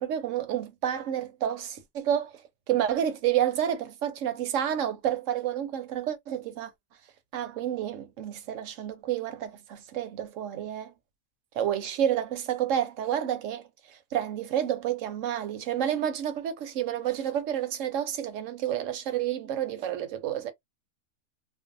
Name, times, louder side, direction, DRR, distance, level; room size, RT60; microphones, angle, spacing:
voice 1, 0.1-6.7 7.3-10.9 11.5-20.5, right 10 dB, 70° right, 0.9 m, -30 dB
2.5 x 2.1 x 2.5 m
omnidirectional pair, 1.5 m